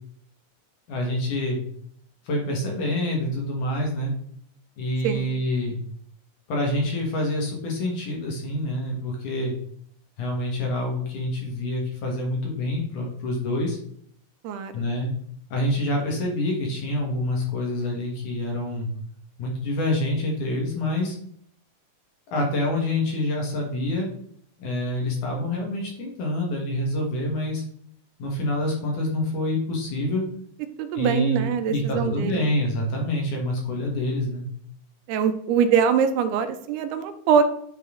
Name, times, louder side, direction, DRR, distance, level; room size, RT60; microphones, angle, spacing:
voice 1, 0.9-1.6 2.2-4.1 4.8-5.8 6.5-9.5 10.2-13.8 14.7-15.1 15.5-18.9 19.4-21.2 22.3-24.1 24.6-27.6 28.2-30.2 30.9-34.4, left 1 dB, 60° left, -1 dB, 2.7 m, -26 dB
voice 2, 30.8-32.4 35.1-37.4, right 7 dB, 90° right, 9 dB, 2.7 m, -23 dB
9.3 x 4.2 x 3.8 m, 0.67 s
omnidirectional pair, 4.5 m